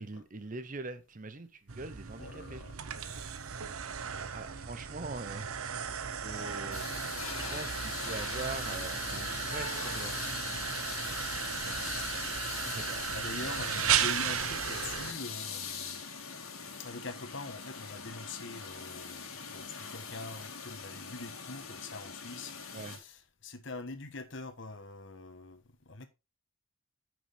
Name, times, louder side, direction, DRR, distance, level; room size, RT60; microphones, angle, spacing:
voice 1, 0.0-2.6 4.3-5.6 6.2-6.8 7.4-10.2 11.6-11.9 12.6-13.0 13.3-13.5 22.7-23.0, right 3 dB, 40° right, 0.8 m, -42 dB
sound 1, 1.7-15.1, right 8 dB, 85° right, 0.8 m, -35 dB
voice 2, 2.1-3.8 12.0-16.1 16.8-26.1, left 3 dB, 60° left, 1.2 m, -45 dB
sound 2, 6.3-23.0, left 6 dB, 85° left, 2.0 m, -41 dB
Alarm, 9.3-14.9, left 3 dB, 15° left, 1.7 m, -53 dB
9.5 x 6.2 x 3.4 m
head